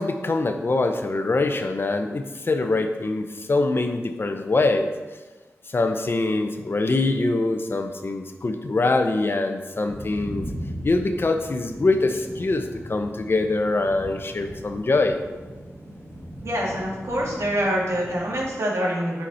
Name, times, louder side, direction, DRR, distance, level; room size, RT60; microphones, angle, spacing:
voice 1, 0.0-4.9 5.7-10.4 10.8-15.2, left 2 dB, 50° left, 6 dB, 0.8 m, -24 dB
sound 1, 9.8-18.5, equal, 40° right, 2.4 m, -38 dB
voice 2, 16.4-19.2, equal, 70° right, -4 dB, 2.5 m, -25 dB
8.2 x 5.8 x 4.3 m, 1.2 s
wide cardioid pair, 75°, 5 cm